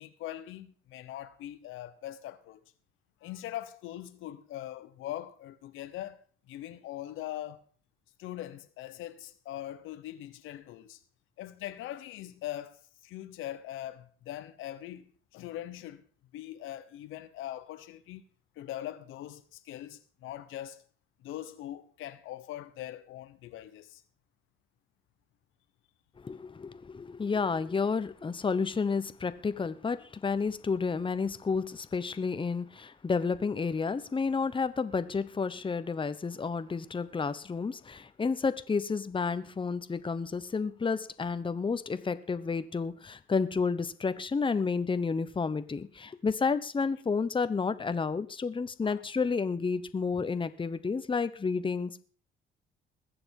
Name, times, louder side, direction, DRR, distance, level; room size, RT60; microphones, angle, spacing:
voice 1, 0.0-2.6 3.2-7.6 8.2-11.0 11.4-16.1 16.3-18.2 18.6-20.8 21.2-24.0 48.8-49.0, left 13 dB, 90° left, 1.1 m, -41 dB
voice 2, 26.2-52.0, left 5 dB, 25° left, 1.0 m, -31 dB
20.5 x 7.0 x 5.4 m
cardioid pair, 90°, 20 cm